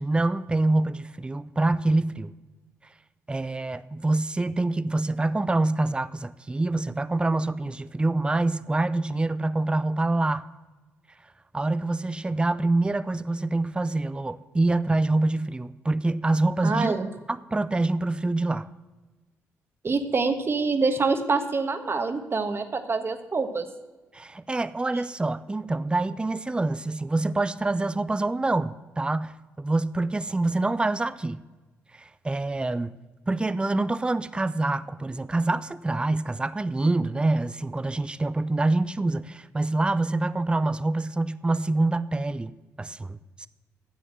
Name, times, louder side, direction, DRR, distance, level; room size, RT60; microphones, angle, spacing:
voice 1, 0.0-2.3 3.3-10.4 11.5-17.0 17.3-18.7 24.1-31.4 31.9-32.9 33.3-42.5 42.8-43.5, right 2 dB, 15° right, 0.5 m, -26 dB
voice 2, 16.6-17.1 19.8-23.7, right 4 dB, 40° right, 1.3 m, -25 dB
9.8 x 7.1 x 7.5 m
supercardioid pair, 60°, 6 cm